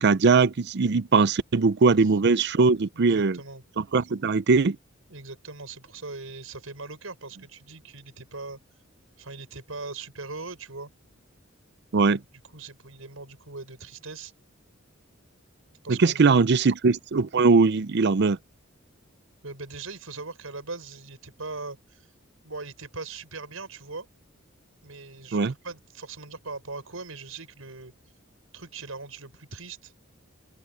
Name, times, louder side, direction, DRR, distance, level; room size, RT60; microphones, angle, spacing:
voice 1, 0.0-3.4 3.8-4.8 11.9-12.2 15.9-18.4 25.3-25.5, right 4 dB, 55° right, 0.5 m, -20 dB
voice 2, 2.6-3.6 5.1-8.6 9.2-10.9 12.5-14.3 15.8-16.4 19.4-22.1 22.4-24.1 24.8-27.9 28.5-29.9, right 3 dB, 85° right, 5.8 m, -40 dB
open air
head